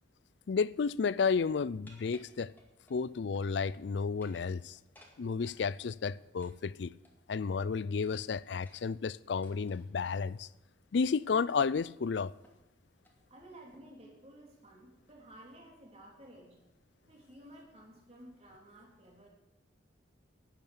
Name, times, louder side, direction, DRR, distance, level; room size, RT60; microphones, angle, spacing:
voice 1, 0.5-2.5 2.9-4.8 5.2-6.9 7.3-10.5 10.9-12.3, left 5 dB, 65° left, 0.4 m, -32 dB
sound 1, 1.9-3.0 3.4-3.8 4.1-5.6 6.4-7.4 8.0-10.2 11.1-11.4 11.8-11.9 12.4-12.7 13.0-13.2 13.7-14.1, left 1 dB, 10° left, 2.2 m, -62 dB
voice 2, 13.3-16.6 17.1-19.3, right 1 dB, 35° right, 3.6 m, -54 dB
12.0 x 9.1 x 8.7 m
head